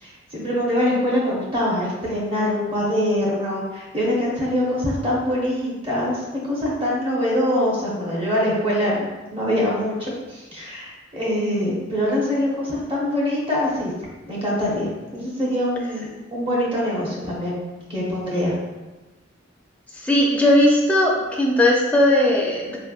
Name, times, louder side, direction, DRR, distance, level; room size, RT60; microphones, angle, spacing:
voice 1, 0.0-9.0 9.3-13.9 14.3-17.6 17.9-18.5, left 1 dB, 25° right, -5 dB, 1.1 m, -24 dB
voice 2, 20.0-22.8, left 1 dB, 5° left, -2 dB, 0.5 m, -18 dB
4.4 x 3.3 x 2.4 m, 1.2 s
head